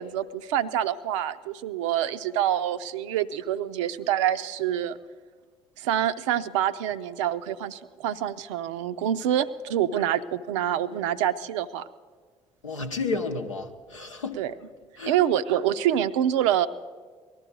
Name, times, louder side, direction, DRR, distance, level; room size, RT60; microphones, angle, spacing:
voice 1, 0.0-5.0 5.8-11.8 14.4-14.5 15.1-16.7, right 11 dB, 70° right, 12 dB, 0.5 m, -26 dB
voice 2, 12.6-14.4 15.0-15.2, left 3 dB, 85° left, 4 dB, 0.7 m, -32 dB
19.0 x 12.5 x 5.2 m, 1.5 s
figure-of-eight pair, 45°, 16 cm